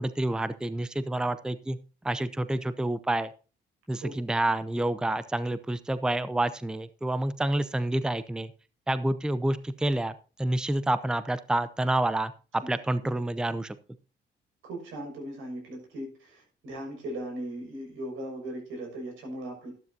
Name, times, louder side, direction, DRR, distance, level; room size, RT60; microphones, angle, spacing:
voice 1, 0.0-1.8 2.0-3.3 3.9-8.5 8.9-13.8, right 1 dB, 5° right, 14 dB, 0.6 m, -28 dB
voice 2, 14.6-19.7, right 1 dB, 85° right, 1 dB, 6.0 m, -38 dB
12.5 x 12.0 x 2.7 m, 0.36 s
cardioid pair, 90°, 20 cm